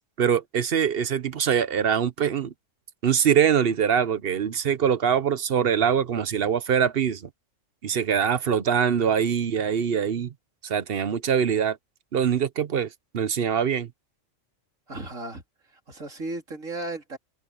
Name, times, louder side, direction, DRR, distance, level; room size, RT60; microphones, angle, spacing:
voice 1, 0.2-2.5 3.0-7.2 7.8-10.3 10.6-11.8 12.1-12.9 13.1-13.9, right 8 dB, 50° right, 1.0 m, -23 dB
voice 2, 14.9-15.4 15.9-17.2, right 2 dB, 80° right, 3.5 m, -35 dB
omnidirectional pair, 1.3 m